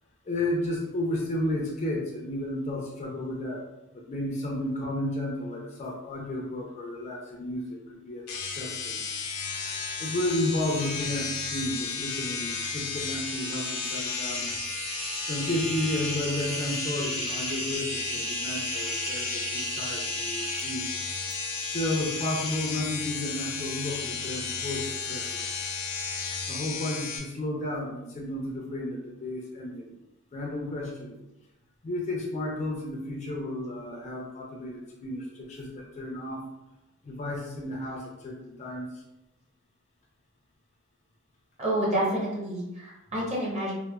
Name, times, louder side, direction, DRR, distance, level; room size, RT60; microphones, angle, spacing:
voice 1, 0.2-3.6 3.9-9.0 9.8-14.5 15.2-20.9 21.7-25.4 26.5-29.9 30.3-31.2 31.8-36.4 37.0-39.0, left 1 dB, 30° left, -1 dB, 0.4 m, -32 dB
sound 1, 8.3-27.2, left 4 dB, 85° left, 0.5 m, -33 dB
sound 2, 12.9-21.4, right 5 dB, 60° right, 0.3 m, -38 dB
voice 2, 37.1-37.4 41.6-43.7, right 1 dB, 30° right, -5 dB, 0.8 m, -29 dB
3.0 x 2.0 x 2.2 m, 0.95 s
head